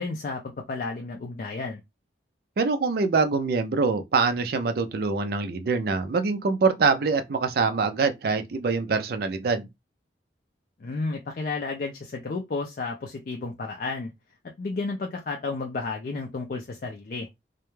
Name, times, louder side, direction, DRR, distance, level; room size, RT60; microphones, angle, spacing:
voice 1, 0.0-1.8 10.8-14.1 14.6-17.3, left 3 dB, 45° left, 0.3 m, -32 dB
voice 2, 2.6-9.7, right 4 dB, 55° right, 0.4 m, -24 dB
2.2 x 2.1 x 3.0 m
head